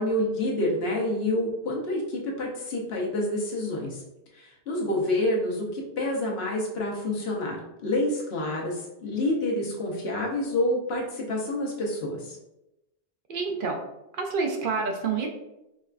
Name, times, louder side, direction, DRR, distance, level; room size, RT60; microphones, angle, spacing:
voice 1, 0.0-4.0 4.4-12.4, left 1 dB, 75° left, -2 dB, 1.1 m, -28 dB
voice 2, 13.3-13.8 14.1-15.3, right 4 dB, 65° right, 2 dB, 0.7 m, -28 dB
4.6 x 2.2 x 2.4 m, 0.92 s
omnidirectional pair, 1.0 m